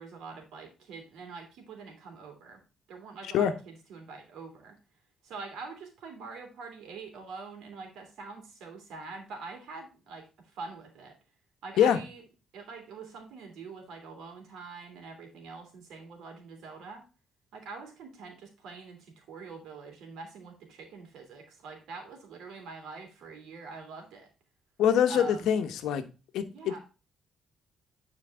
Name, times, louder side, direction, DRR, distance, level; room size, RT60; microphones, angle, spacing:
voice 1, 0.0-2.6 2.9-4.8 5.2-10.3 10.5-11.1 11.6-12.2 12.5-17.0 17.5-24.3 25.1-25.5 26.5-26.8, right 4 dB, 85° right, 3 dB, 2.7 m, -44 dB
voice 2, 24.8-26.1 26.3-26.8, left 9 dB, 85° left, 9 dB, 0.9 m, -24 dB
10.5 x 4.6 x 3.5 m, 0.31 s
cardioid pair, 90°, 0 cm